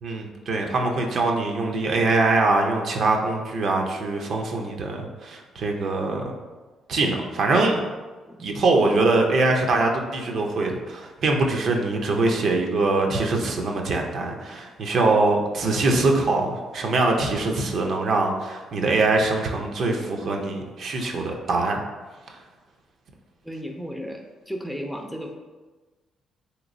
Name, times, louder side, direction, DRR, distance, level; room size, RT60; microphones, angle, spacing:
voice 1, 0.0-6.3 6.9-7.8 8.4-21.8 22.3-22.4, right 3 dB, 65° right, 2 dB, 0.5 m, -23 dB
voice 2, 23.4-25.4, equal, ahead, 2 dB, 0.4 m, -34 dB
3.2 x 2.9 x 2.5 m, 1.3 s
cardioid pair, 90°, 0 cm